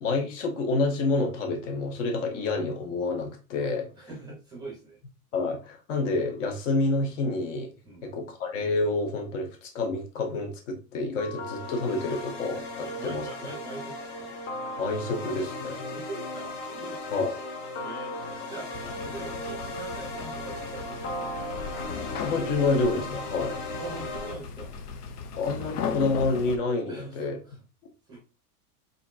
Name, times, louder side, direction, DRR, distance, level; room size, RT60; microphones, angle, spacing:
voice 1, 0.0-3.9 5.3-7.7 8.0-13.3 14.8-15.8 17.1-17.3 22.2-23.6 25.4-27.4, left 3 dB, 55° left, 4 dB, 1.3 m, -28 dB
voice 2, 4.0-5.0 7.8-8.1 12.8-14.3 15.9-17.2 17.8-18.7 19.0-21.4 23.8-24.7 26.9-27.6 28.1-28.2, right 3 dB, 10° right, -2 dB, 0.6 m, -43 dB
sound 1, 11.2-24.3, left 2 dB, 35° left, 0.9 m, -36 dB
sound 2, 18.7-26.6, left 6 dB, 80° left, 0.9 m, -37 dB
4.1 x 4.0 x 2.5 m, 0.32 s
supercardioid pair, 170°, 45 cm